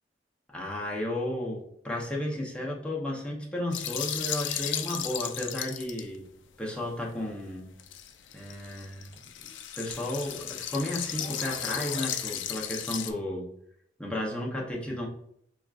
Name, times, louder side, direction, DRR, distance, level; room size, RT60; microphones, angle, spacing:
voice 1, 0.5-6.2 6.6-7.7 8.3-9.1 9.4-13.5 14.0-15.1, left 1 dB, 5° left, -3 dB, 0.7 m, -33 dB
sound 1, 3.7-6.1 7.8-13.1, left 10 dB, 70° left, 0.4 m, -35 dB
sound 2, 9.1-9.2 9.4-12.3, left 1 dB, 40° left, 1.0 m, -45 dB
5.9 x 2.4 x 2.4 m, 0.72 s
head